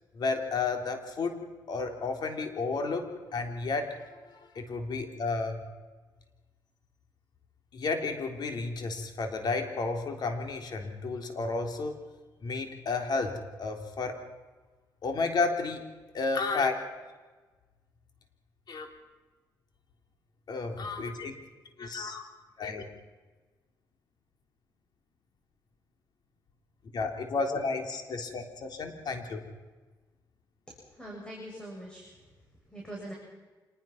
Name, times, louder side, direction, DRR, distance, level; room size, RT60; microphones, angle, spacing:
voice 1, 0.1-1.4 1.7-5.6 7.7-12.0 12.4-14.2 15.0-15.8 16.1-16.7 18.7-18.9 20.5-21.3 21.8-22.3 22.6-22.8 26.9-29.4, left 3 dB, 60° left, 4 dB, 3.7 m, -32 dB
voice 2, 31.0-32.1 32.7-33.1, right 1 dB, 10° left, -2 dB, 7.8 m, -42 dB
26.5 x 20.5 x 6.0 m, 1.3 s
cardioid pair, 75°, 8 cm